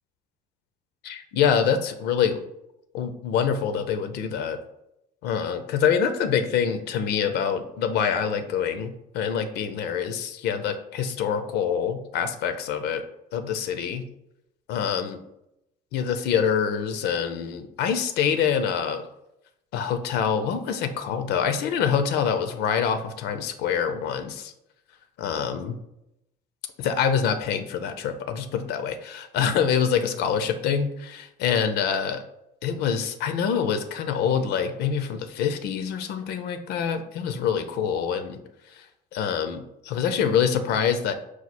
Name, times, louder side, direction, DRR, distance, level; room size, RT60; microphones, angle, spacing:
voice 1, 1.0-2.4 2.9-4.6 5.2-13.0 13.3-14.0 14.7-15.2 15.9-19.1 19.7-24.5 25.2-25.8 26.8-32.2 32.6-38.4 38.7-38.8 39.1-41.1, left 7 dB, 80° left, 9 dB, 0.5 m, -25 dB
4.6 x 2.4 x 4.1 m, 0.83 s
cardioid pair, 110°, 17 cm